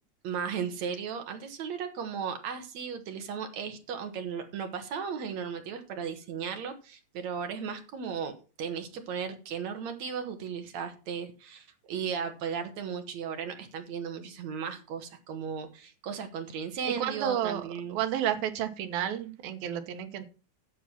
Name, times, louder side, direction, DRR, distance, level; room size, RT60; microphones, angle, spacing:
voice 1, 0.2-8.3 8.6-18.0, right 6 dB, 60° right, 7 dB, 2.3 m, -36 dB
voice 2, 16.8-17.6 17.9-20.3, right 10 dB, 85° right, 8 dB, 3.0 m, -31 dB
10.0 x 7.4 x 5.9 m, 0.35 s
omnidirectional pair, 4.1 m